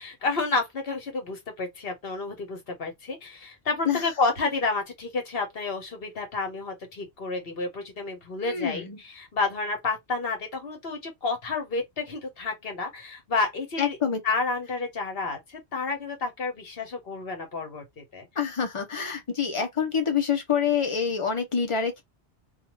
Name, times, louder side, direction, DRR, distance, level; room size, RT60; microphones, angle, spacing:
voice 1, 0.0-14.0 14.2-18.3, left 3 dB, 60° left, 1.2 m, -30 dB
voice 2, 8.4-9.0 13.8-14.2 18.4-22.0, left 7 dB, 35° left, 0.7 m, -26 dB
2.6 x 2.3 x 3.0 m
omnidirectional pair, 1.1 m